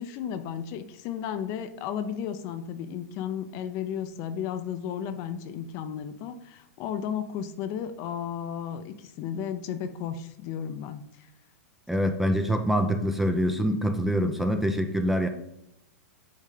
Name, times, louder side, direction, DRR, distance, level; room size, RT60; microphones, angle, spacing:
voice 1, 0.0-11.0, left 8 dB, 45° left, 9 dB, 0.6 m, -34 dB
voice 2, 11.9-15.3, equal, 5° right, 6 dB, 0.5 m, -25 dB
8.5 x 3.2 x 3.7 m, 0.82 s
hypercardioid pair, 115°, 8 cm